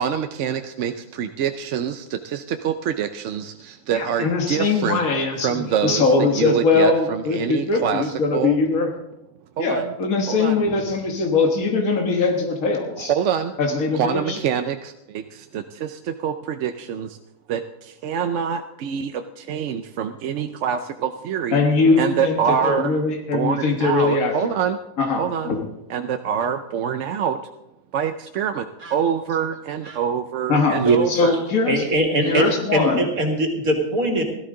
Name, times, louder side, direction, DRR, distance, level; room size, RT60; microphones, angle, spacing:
voice 1, 0.0-5.0 5.4-8.6 9.6-9.9 10.3-10.6 13.0-13.5 13.9-17.2 17.5-21.6 22.0-22.9 23.3-24.8 25.2-25.6 25.9-27.4 27.9-31.4, right 8 dB, 65° right, 8 dB, 0.9 m, -25 dB
voice 2, 3.9-8.9 9.6-13.1 13.6-14.4 21.5-24.6 25.0-25.7 30.5-30.8 31.1-31.8 32.2-33.1, left 4 dB, 80° left, 2 dB, 1.8 m, -21 dB
voice 3, 31.7-34.2, right 1 dB, 90° right, 3 dB, 2.4 m, -21 dB
17.0 x 13.0 x 3.8 m, 0.88 s
omnidirectional pair, 1.4 m